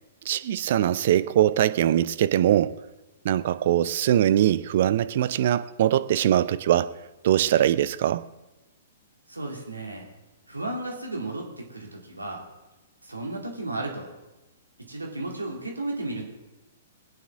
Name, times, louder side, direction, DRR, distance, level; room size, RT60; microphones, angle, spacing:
voice 1, 0.2-2.8 3.2-8.3, right 11 dB, 50° right, 0.5 m, -22 dB
voice 2, 9.3-10.1 10.5-12.4 13.0-14.1 14.8-16.2, right 2 dB, 85° right, 2.6 m, -34 dB
21.0 x 9.0 x 3.6 m
figure-of-eight pair, 115°, 0 cm